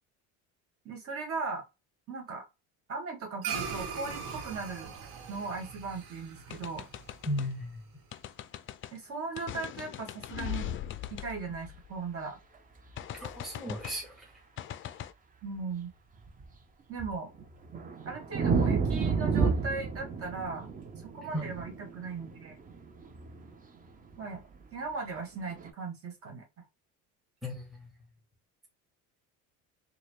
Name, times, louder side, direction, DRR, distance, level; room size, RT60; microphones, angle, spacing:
voice 1, 0.9-1.6 2.1-2.4 2.9-4.9 5.3-6.9 8.9-10.8 11.1-12.4 15.4-15.9 16.9-17.3 18.1-20.7 21.0-22.6 24.2-24.4 24.7-26.4, right 4 dB, 40° right, 1.8 m, -38 dB
sound 1, 3.4-8.0, right 6 dB, 60° right, 1.1 m, -40 dB
sound 2, 6.5-7.5 8.1-9.0 9.4-12.2 13.0-14.0 14.6-15.1, left 12 dB, 35° left, 0.4 m, -40 dB
voice 2, 7.3-7.8 13.1-14.2 21.3-21.5 27.4-27.9, equal, ahead, 1.3 m, -35 dB
sound 3, 12.8-13.4 13.8-13.9 16.2-16.5 17.0-23.6 23.9-24.6 25.5-25.7, right 5 dB, 20° right, 0.7 m, -31 dB
4.1 x 2.3 x 3.2 m
supercardioid pair, 100°, 37 cm